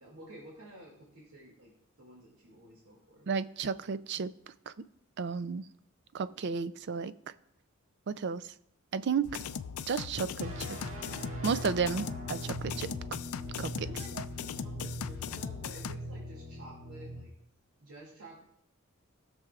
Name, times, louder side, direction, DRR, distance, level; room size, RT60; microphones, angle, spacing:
voice 1, 0.0-1.7 2.0-3.3 13.7-14.2 14.5-17.3 17.8-18.4, right 1 dB, 85° right, -4 dB, 2.4 m, -51 dB
voice 2, 3.3-4.3 5.2-5.6 6.1-7.1 8.1-8.4 8.9-9.3 9.9-10.8 11.4-12.9 13.6-13.9 14.2-14.3, right 5 dB, 50° right, 15 dB, 0.4 m, -32 dB
sound 1, 9.2-16.0, left 7 dB, 80° left, 0.4 m, -39 dB
sound 2, 10.4-17.2, equal, 65° right, 1.7 m, -41 dB
19.0 x 6.9 x 2.4 m, 0.73 s
head